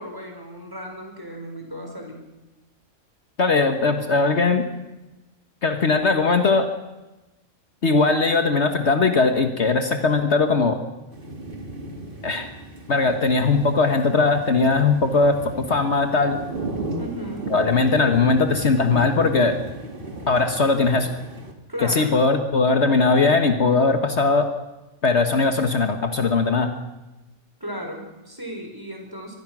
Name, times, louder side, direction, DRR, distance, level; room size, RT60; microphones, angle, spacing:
voice 1, 0.0-2.2 17.0-17.5 21.7-22.1 27.6-29.4, equal, 15° right, 2 dB, 4.9 m, -35 dB
voice 2, 3.4-4.7 5.6-6.7 7.8-10.8 12.2-12.5 12.9-16.4 17.5-19.6 20.3-21.1 21.8-24.5 25.0-26.7, left 3 dB, 55° left, 7 dB, 1.6 m, -19 dB
sound 1, 11.1-21.5, right 2 dB, 40° right, 2.2 m, -35 dB
25.0 x 20.0 x 6.2 m, 1.0 s
omnidirectional pair, 1.4 m